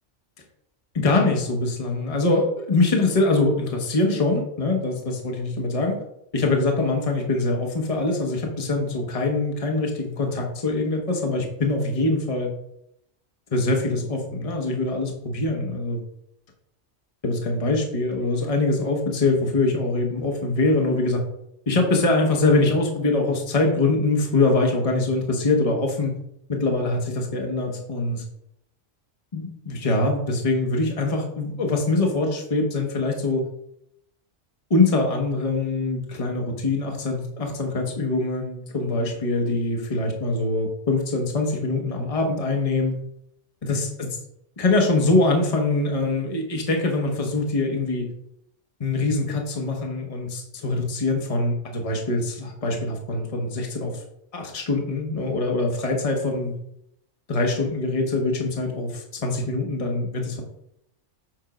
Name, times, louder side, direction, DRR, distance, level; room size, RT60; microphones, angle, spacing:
voice 1, 0.9-6.0 6.3-12.5 13.5-16.0 17.2-21.2 21.7-26.1 26.5-28.2 29.3-33.4 34.7-42.9 43.6-44.1 44.6-48.1 48.8-53.9 54.3-56.5 57.3-60.4, left 2 dB, 30° left, 1 dB, 1.1 m, -23 dB
7.6 x 3.6 x 5.0 m, 0.77 s
omnidirectional pair, 1.2 m